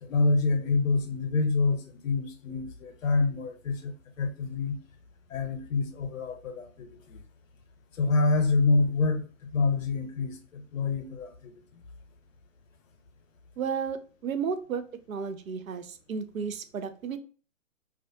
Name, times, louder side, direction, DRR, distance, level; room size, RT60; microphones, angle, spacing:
voice 1, 0.0-4.8 5.3-7.2 8.0-9.2 9.5-11.5, left 3 dB, 70° left, 0.7 m, -27 dB
voice 2, 13.6-14.8 15.1-17.2, right 6 dB, 90° right, 0.5 m, -33 dB
2.4 x 2.1 x 2.6 m
hypercardioid pair, 125°, 40 cm